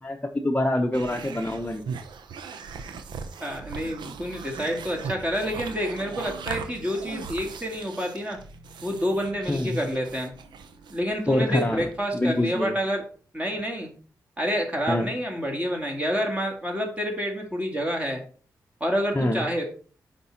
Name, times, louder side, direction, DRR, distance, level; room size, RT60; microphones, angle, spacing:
voice 1, 0.0-1.9 9.5-9.8 11.3-11.9 12.1-12.8 14.9-15.1 19.1-19.4, left 1 dB, 20° left, 1 dB, 0.8 m, -25 dB
sound 1, 0.9-12.7, right 5 dB, 85° right, 0.7 m, -39 dB
voice 2, 3.4-8.4 8.8-10.3 10.9-13.0 13.3-13.9 14.4-18.2 18.8-19.6, equal, 20° right, 1 dB, 1.8 m, -28 dB
5.3 x 5.1 x 4.4 m, 0.41 s
supercardioid pair, 45°, 8 cm